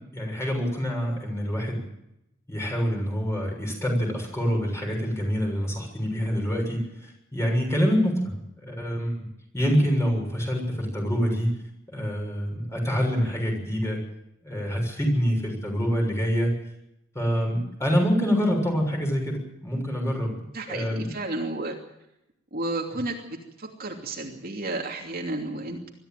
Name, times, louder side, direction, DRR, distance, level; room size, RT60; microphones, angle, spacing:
voice 1, 0.1-1.8 2.5-9.2 9.5-11.5 11.9-14.0 14.4-16.5 17.2-20.4 20.7-21.1, equal, 15° left, 1 dB, 6.9 m, -26 dB
voice 2, 20.5-21.7 22.5-25.9, right 2 dB, 50° right, 1 dB, 2.8 m, -32 dB
22.5 x 14.0 x 9.2 m, 0.84 s
head